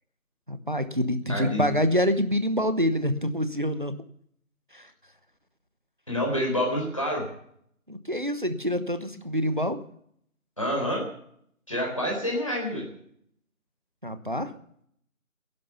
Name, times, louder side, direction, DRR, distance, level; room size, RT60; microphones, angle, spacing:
voice 1, 0.5-3.9 4.7-4.9 7.9-9.8 14.0-14.5, equal, 35° right, 10 dB, 1.1 m, -26 dB
voice 2, 1.3-1.7 6.1-7.2 10.6-11.0 11.7-12.9, equal, 25° left, -1 dB, 4.2 m, -27 dB
16.5 x 11.0 x 7.0 m, 0.66 s
figure-of-eight pair, 180°, 43 cm